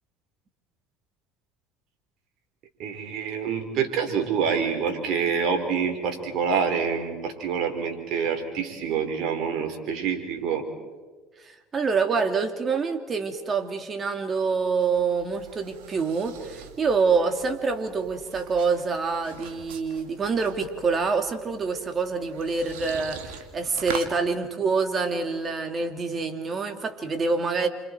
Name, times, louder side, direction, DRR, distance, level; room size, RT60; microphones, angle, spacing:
voice 1, 2.8-10.7, right 6 dB, 65° right, 5 dB, 4.4 m, -27 dB
voice 2, 11.4-27.7, right 4 dB, 35° right, 7 dB, 2.7 m, -26 dB
sound 1, 14.5-24.1, right 8 dB, 85° right, 2.2 m, -43 dB
29.5 x 26.5 x 4.7 m, 1.4 s
supercardioid pair, 85°, 0 cm